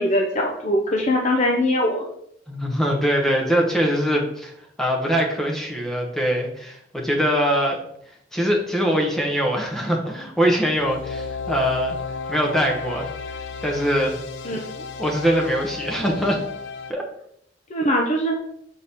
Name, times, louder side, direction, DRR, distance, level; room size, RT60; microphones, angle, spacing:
voice 1, 0.0-2.0 14.4-14.6 17.7-18.4, left 1 dB, 40° left, 0 dB, 0.7 m, -21 dB
voice 2, 2.5-4.5 4.8-7.8 8.3-12.0 12.3-13.1 13.6-14.2 15.0-16.4 16.9-17.0, equal, ahead, -1 dB, 0.8 m, -22 dB
sound 1, 10.7-16.9, left 4 dB, 85° left, 0.5 m, -33 dB
6.4 x 4.2 x 3.5 m, 0.71 s
head